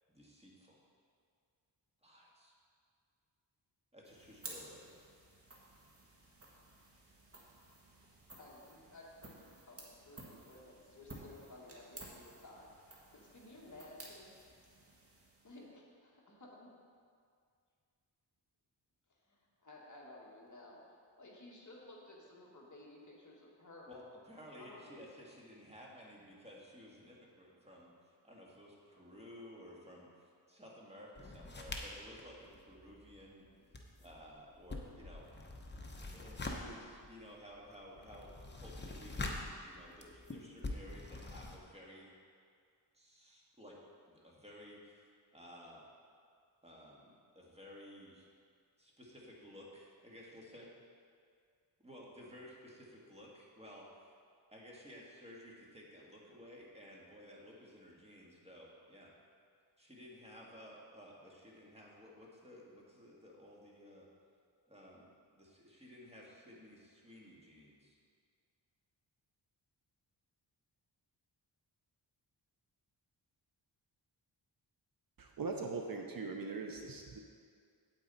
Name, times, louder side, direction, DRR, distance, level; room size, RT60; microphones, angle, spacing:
voice 1, 0.1-0.8 2.0-2.5 3.9-5.0 23.9-33.4 34.0-35.3 36.1-42.1 42.9-43.7 44.1-45.8 46.6-48.3 48.8-50.7 51.8-54.1 54.5-59.1 59.8-64.0 64.7-65.0 65.3-68.0, equal, 15° right, -4 dB, 1.7 m, -55 dB
sound 1, 4.0-15.7, right 2 dB, 30° right, 1.6 m, -55 dB
voice 2, 8.4-12.7 13.1-14.3 15.4-16.7 19.3-24.0 24.6-25.0, left 2 dB, 40° left, -3 dB, 1.7 m, -55 dB
sound 2, 31.1-33.3 33.6-41.6, left 2 dB, 25° left, 0.9 m, -45 dB
voice 3, 75.2-77.2, right 4 dB, 50° right, 2 dB, 0.8 m, -40 dB
8.9 x 8.5 x 4.1 m, 2.2 s
wide cardioid pair, 115°, 44 cm